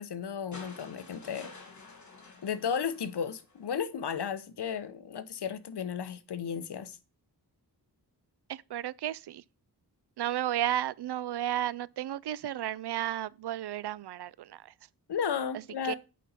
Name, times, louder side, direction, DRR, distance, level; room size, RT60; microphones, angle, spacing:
voice 1, 0.0-1.5 2.4-7.0 15.1-16.0, left 7 dB, 90° left, 1.0 m, -34 dB
sound 1, 0.5-3.8 5.1-5.2, left 3 dB, 45° left, 2.3 m, -50 dB
voice 2, 8.5-9.4 10.2-14.7 15.8-16.0, right 12 dB, 85° right, 0.5 m, -33 dB
8.3 x 5.3 x 4.3 m
wide cardioid pair, 135°, 39 cm